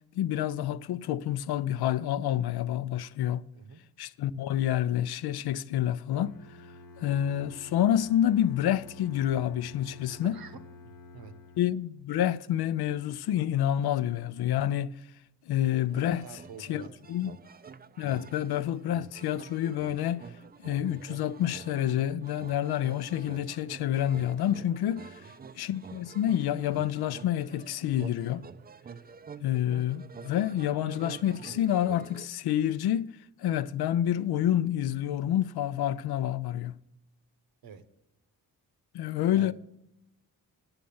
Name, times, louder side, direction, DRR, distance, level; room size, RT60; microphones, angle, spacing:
voice 1, 0.1-3.4 4.0-6.3 7.0-10.3 11.6-14.9 15.5-16.2 16.7-17.4 18.0-20.3 20.6-25.2 25.6-28.4 29.4-33.1 33.4-36.7 38.9-39.5, left 11 dB, 85° left, 0.5 m, -28 dB
Bowed string instrument, 6.2-12.0, left 3 dB, 60° left, 1.1 m, -50 dB
voice 2, 10.1-10.6 10.8-11.3 16.0-17.2 25.1-25.3 37.6-37.8 39.3-39.5, right 6 dB, 70° right, 1.0 m, -48 dB
sound 1, 15.9-32.3, right 6 dB, 25° right, 0.4 m, -48 dB
9.9 x 6.4 x 6.9 m
cardioid pair, 95°, 37 cm